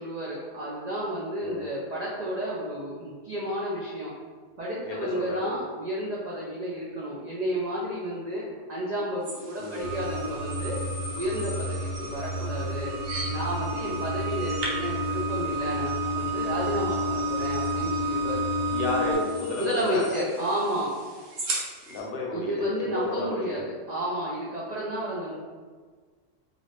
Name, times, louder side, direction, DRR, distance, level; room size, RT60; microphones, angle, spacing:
voice 1, 0.0-4.1 4.6-8.4 8.7-10.8 11.2-12.9 13.3-18.4 19.6-20.9 22.3-25.4, equal, 75° right, -6 dB, 0.4 m, -31 dB
voice 2, 4.8-5.6 9.6-9.8 18.7-20.1 21.9-23.6, left 2 dB, 60° left, -1 dB, 0.7 m, -32 dB
sound 1, 9.2-22.0, right 2 dB, 90° right, 1.1 m, -40 dB
sound 2, 9.8-19.2, equal, 10° left, 1.0 m, -30 dB
2.5 x 2.4 x 3.2 m, 1.5 s
omnidirectional pair, 1.3 m